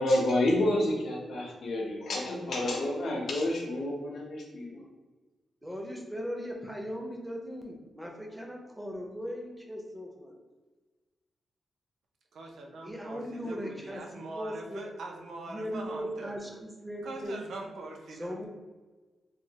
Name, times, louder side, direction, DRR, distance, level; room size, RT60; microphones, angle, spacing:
voice 1, 0.0-4.8, left 1 dB, 65° left, 0 dB, 0.6 m, -29 dB
voice 2, 5.6-10.4 12.8-14.8 15.5-17.4 18.1-18.5, equal, 5° right, 0 dB, 0.4 m, -38 dB
voice 3, 12.3-16.6 17.0-18.5, right 2 dB, 85° right, 1 dB, 0.4 m, -42 dB
3.1 x 2.1 x 2.7 m, 1.3 s
wide cardioid pair, 155°, 0 cm